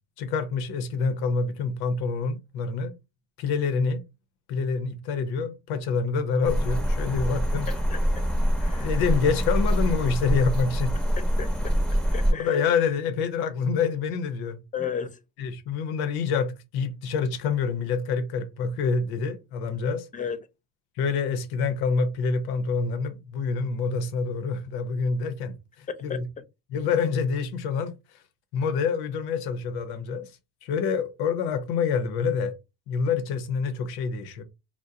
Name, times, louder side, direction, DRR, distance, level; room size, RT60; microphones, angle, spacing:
voice 1, 0.2-2.9 3.4-4.0 4.5-7.7 8.8-11.0 12.3-14.6 15.4-20.1 21.0-26.2 26.7-28.0 28.5-30.3 30.6-32.5 32.9-34.4, left 5 dB, 75° left, 0.8 m, -27 dB
sound 1, 6.4-12.3, equal, ahead, 0.8 m, -25 dB
voice 2, 7.7-8.3 8.6-9.0 11.2-12.9 14.7-15.2 20.1-20.5 25.9-26.5, left 7 dB, 20° left, 0.4 m, -35 dB
2.4 x 2.1 x 3.9 m
cardioid pair, 110°, 38 cm